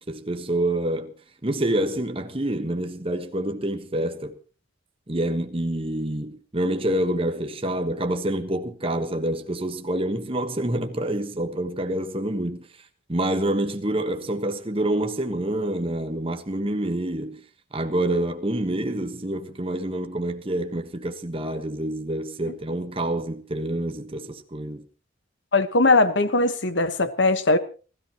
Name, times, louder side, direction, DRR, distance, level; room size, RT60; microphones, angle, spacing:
voice 1, 0.1-1.1 1.4-4.3 5.1-12.7 13.1-17.4 17.7-24.8, right 1 dB, 30° right, 1.3 m, -27 dB
voice 2, 25.5-27.6, left 2 dB, 65° left, 1.3 m, -20 dB
28.5 x 13.5 x 3.0 m
head